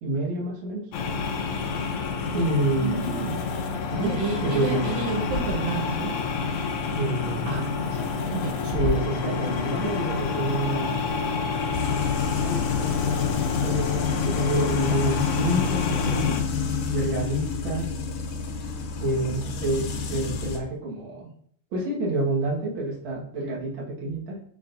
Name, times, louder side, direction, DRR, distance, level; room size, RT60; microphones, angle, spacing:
voice 1, 0.0-0.9 2.3-3.3 3.9-4.1 4.4-4.9 6.9-8.1 8.7-11.1 12.3-16.3 16.8-17.9 19.0-21.3 21.7-24.4, right 2 dB, 50° right, -4 dB, 1.6 m, -28 dB
sound 1, 0.9-16.4, left 5 dB, 85° left, 1.6 m, -28 dB
voice 2, 2.8-3.4 4.0-6.1 8.3-8.8, right 4 dB, 75° right, -2 dB, 2.5 m, -30 dB
sound 2, 11.7-20.6, left 6 dB, 70° left, 2.4 m, -28 dB
6.7 x 5.7 x 2.6 m, 0.62 s
omnidirectional pair, 4.5 m